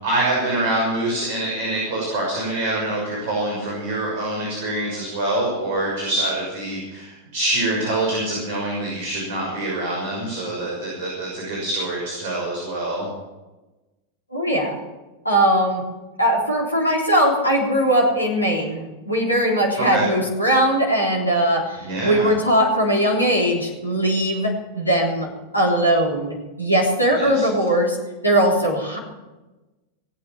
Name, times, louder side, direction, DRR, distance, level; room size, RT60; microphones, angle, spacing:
voice 1, 0.0-13.1 19.8-20.0 21.8-22.3 27.1-27.4, right 1 dB, 50° right, -3 dB, 6.4 m, -25 dB
voice 2, 14.3-14.8 15.2-15.8 16.2-25.3 25.5-28.0 28.2-29.0, right 1 dB, 85° left, -2 dB, 3.4 m, -20 dB
21.0 x 8.5 x 7.7 m, 1.1 s
figure-of-eight pair, 90°, 0 cm